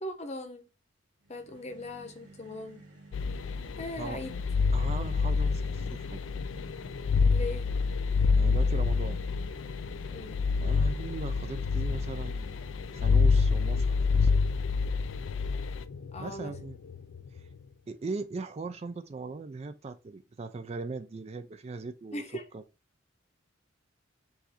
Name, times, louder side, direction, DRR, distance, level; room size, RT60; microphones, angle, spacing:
voice 1, 0.0-0.6 1.3-2.8 3.8-4.4 7.3-7.7 10.1-10.4 16.1-16.5 22.1-22.4, left 1 dB, 35° left, 0.8 m, -39 dB
sound 1, 1.2-13.8, right 2 dB, 60° right, 2.0 m, -53 dB
sound 2, 3.1-17.4, left 4 dB, 75° left, 0.4 m, -27 dB
voice 2, 4.7-6.2 8.4-9.2 10.6-12.5 12.9-14.3 16.2-16.8 17.3-17.5 17.9-22.2 22.5-22.6, right 3 dB, 30° right, 0.3 m, -39 dB
4.7 x 2.6 x 4.2 m
head